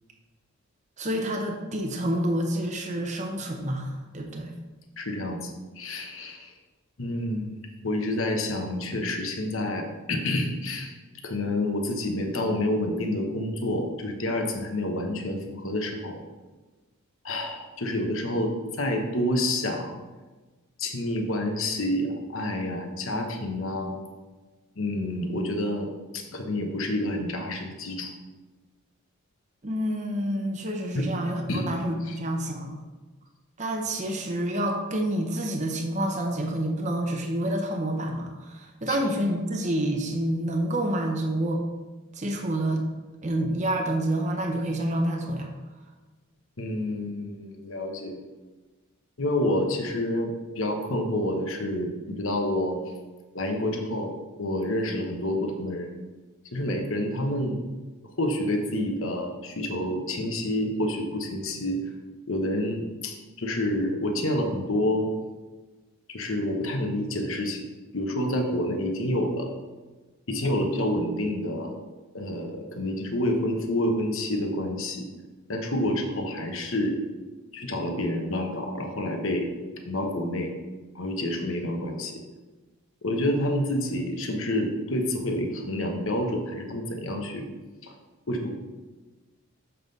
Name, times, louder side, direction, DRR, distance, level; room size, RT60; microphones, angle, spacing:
voice 1, 1.0-4.5 29.6-32.8 33.6-41.6 42.1-42.8 43.2-45.5, right 1 dB, 30° right, 2 dB, 0.7 m, -28 dB
voice 2, 5.0-6.5 7.0-7.5 7.8-10.9 11.2-16.2 17.2-20.0 20.8-24.0 24.8-28.1 30.9-31.1 31.5-31.6 32.1-32.2 38.9-39.0 46.6-48.2 49.2-52.8 53.3-54.1 54.4-56.0 56.5-57.6 58.2-61.8 62.3-65.1 66.1-67.6 67.9-69.5 70.3-71.7 72.1-75.1 75.5-77.0 77.5-79.5 79.9-80.5 80.9-82.2 83.0-87.5 87.8-87.9 88.3-88.5, left 1 dB, 65° left, 3 dB, 1.1 m, -28 dB
7.2 x 5.5 x 4.0 m, 1.3 s
head